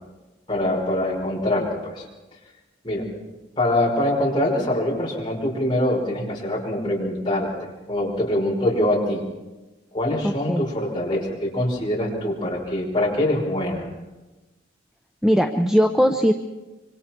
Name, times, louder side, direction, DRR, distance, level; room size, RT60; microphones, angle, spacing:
voice 1, 0.5-2.0 2.8-3.0 3.6-9.2 9.9-13.9, left 1 dB, 25° left, -3 dB, 5.6 m, -24 dB
voice 2, 10.2-10.6 15.2-16.3, equal, 5° right, 5 dB, 0.6 m, -19 dB
26.5 x 25.0 x 4.5 m, 1.1 s
head